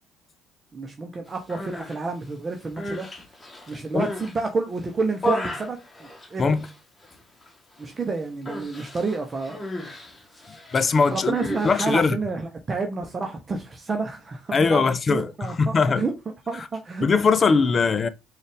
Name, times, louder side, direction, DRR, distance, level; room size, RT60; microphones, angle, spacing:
voice 1, 0.7-3.1 3.7-6.4 7.8-9.6 11.1-16.1 16.5-17.1, right 4 dB, 35° right, 0.7 m, -29 dB
Human voice, 1.4-2.0 2.6-4.4 4.8-6.8 7.0-7.5 7.8-8.0 8.5-12.1, equal, 20° left, 1.2 m, -34 dB
voice 2, 10.7-11.4 11.6-12.1 14.5-16.0 16.6-16.7 17.0-18.1, left 4 dB, 40° left, 0.5 m, -21 dB
3.9 x 2.4 x 3.4 m
hypercardioid pair, 60°, 0 cm